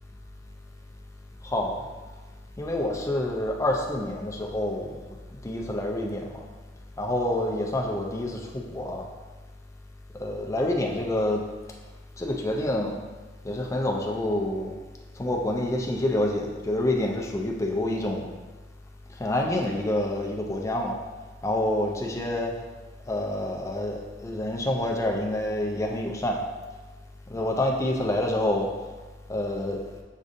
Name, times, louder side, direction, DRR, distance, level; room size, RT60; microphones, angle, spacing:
voice 1, 1.4-1.8 2.6-5.0 5.4-6.4 7.0-9.1 10.2-11.4 12.2-13.0 13.4-14.7 15.2-18.3 19.2-21.0 21.4-22.6 23.1-26.4 27.3-28.7 29.3-29.8, left 1 dB, 15° left, 0 dB, 0.4 m, -27 dB
6.1 x 2.6 x 2.5 m, 1.3 s
head